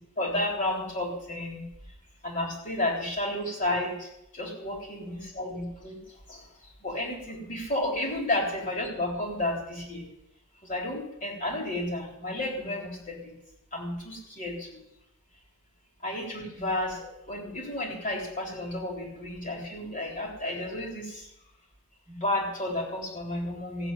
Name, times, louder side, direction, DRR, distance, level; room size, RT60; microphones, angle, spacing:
voice 1, 0.2-1.6 2.2-6.0 6.3-6.5 6.8-10.1 10.6-13.3 13.7-14.8 16.0-21.3 22.1-23.9, left 1 dB, 35° left, -1 dB, 3.7 m, -32 dB
15.0 x 7.1 x 9.1 m, 0.82 s
head